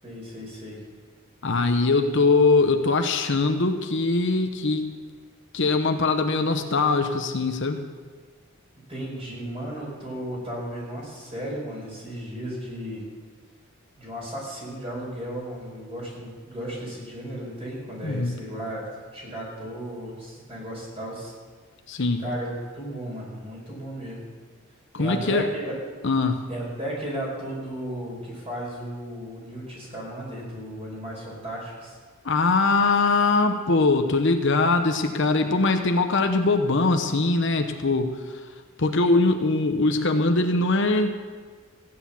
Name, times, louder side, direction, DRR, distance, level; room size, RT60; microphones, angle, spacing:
voice 1, 0.0-0.8 8.9-13.1 14.0-18.8 19.1-21.3 22.2-24.2 25.0-25.7 26.5-32.0, right 1 dB, 25° right, -3 dB, 5.2 m, -35 dB
voice 2, 1.4-4.9 5.5-7.8 18.0-18.4 21.9-22.2 24.9-25.5 26.0-26.4 32.2-38.5 38.8-41.2, left 3 dB, 55° left, 6 dB, 0.9 m, -22 dB
15.5 x 9.9 x 7.1 m, 1.5 s
head